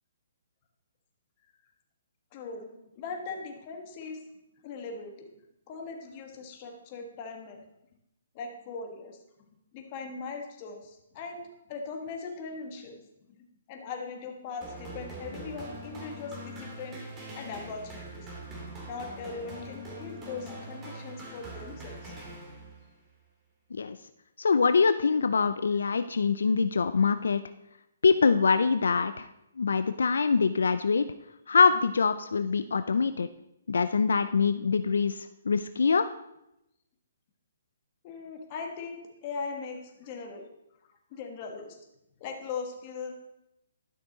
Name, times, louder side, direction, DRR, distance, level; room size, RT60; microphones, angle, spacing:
voice 1, 2.3-4.2 4.6-5.3 5.7-7.6 8.3-9.2 9.7-11.4 11.7-13.0 13.4-18.3 18.8-22.1 38.0-40.5 41.1-41.8 42.2-43.1, left 4 dB, 30° left, 3 dB, 1.5 m, -40 dB
sound 1, 14.6-22.9, right 1 dB, 20° right, 2.1 m, -43 dB
voice 2, 24.4-27.4 28.0-29.3 29.6-31.1 31.5-33.3 33.7-36.1, left 5 dB, 85° left, 11 dB, 0.4 m, -24 dB
12.0 x 6.1 x 3.9 m, 0.85 s
hypercardioid pair, 155°, 0 cm